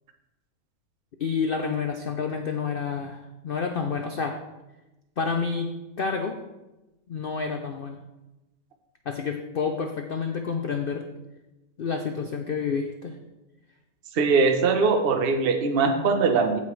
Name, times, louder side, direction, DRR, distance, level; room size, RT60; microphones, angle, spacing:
voice 1, 1.2-4.4 5.2-6.4 7.1-8.0 9.1-11.1 11.8-13.2, left 5 dB, 75° left, 5 dB, 0.5 m, -29 dB
voice 2, 14.1-16.6, right 4 dB, 45° right, 5 dB, 0.9 m, -21 dB
15.5 x 5.5 x 3.2 m, 1.0 s
omnidirectional pair, 1.8 m